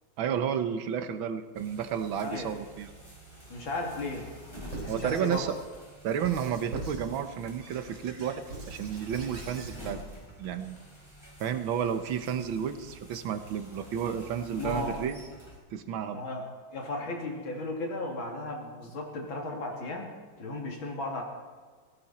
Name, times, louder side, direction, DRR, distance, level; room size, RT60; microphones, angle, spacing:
voice 1, 0.2-2.9 4.9-5.6 6.0-10.0 10.4-10.8 11.4-15.2 15.7-16.2, right 8 dB, 90° right, 9 dB, 1.8 m, -31 dB
sound 1, 1.6-15.6, equal, 10° left, 5.2 m, -48 dB
voice 2, 2.2-2.5 3.5-4.3 4.8-5.4 14.6-15.1 16.1-16.5 16.7-21.2, left 2 dB, 90° left, 1 dB, 3.4 m, -35 dB
Squeak / Writing, 4.7-5.6 6.2-7.1 7.6-9.8, right 2 dB, 70° right, 5.1 m, -42 dB
17.5 x 17.0 x 4.3 m, 1.5 s
omnidirectional pair, 2.1 m